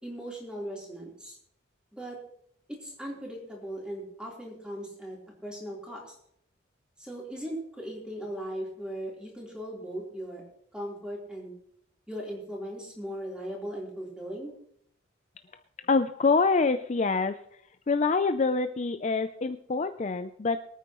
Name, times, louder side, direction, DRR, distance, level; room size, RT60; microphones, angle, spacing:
voice 1, 0.0-1.4 1.9-2.2 2.8-5.2 5.4-6.1 7.0-10.4 10.7-11.5 12.1-14.5, equal, 5° right, -3 dB, 3.7 m, -38 dB
voice 2, 15.9-17.4 17.9-20.6, left 4 dB, 35° left, 9 dB, 0.4 m, -25 dB
23.5 x 9.2 x 3.1 m, 0.69 s
head